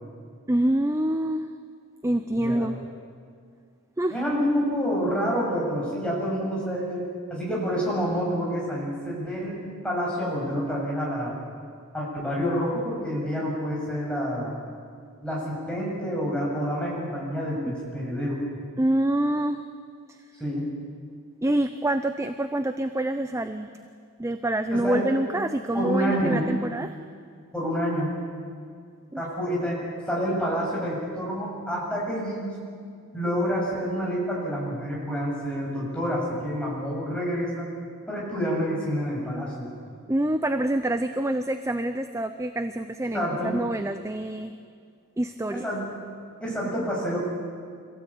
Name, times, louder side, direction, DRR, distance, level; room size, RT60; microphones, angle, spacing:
voice 1, 0.5-1.5 2.0-2.7 4.0-4.2 17.7-17.8 18.8-19.6 21.4-23.7 24.2-27.0 29.1-29.2 40.1-44.5 45.2-45.7 46.6-46.9, right 1 dB, 15° right, 9 dB, 0.6 m, -26 dB
voice 2, 4.1-11.4 11.9-14.5 15.2-18.4 20.4-20.7 24.7-25.1 25.7-26.5 27.5-28.1 29.2-32.6 33.1-37.7 38.1-39.7 43.0-43.6 45.5-45.9 46.4-47.2, equal, 5° left, -5 dB, 7.1 m, -28 dB
26.0 x 16.5 x 8.6 m, 2.1 s
head